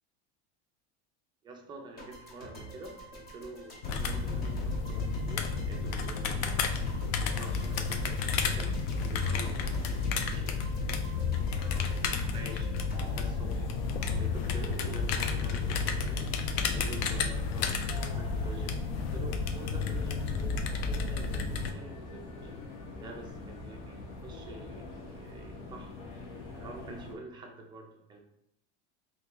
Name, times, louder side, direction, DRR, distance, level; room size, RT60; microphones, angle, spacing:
voice 1, 1.4-10.6 11.5-13.7 14.2-16.3 16.7-22.6 23.0-26.0 26.5-28.2, right 2 dB, 15° right, 1 dB, 0.3 m, -47 dB
sound 1, 2.0-14.2, right 1 dB, 30° left, 0.8 m, -47 dB
sound 2, 3.8-21.7, left 5 dB, 60° left, 0.4 m, -31 dB
sound 3, 12.9-27.1, left 3 dB, 90° left, 0.8 m, -44 dB
2.7 x 2.6 x 3.7 m, 0.77 s
supercardioid pair, 150°, 34 cm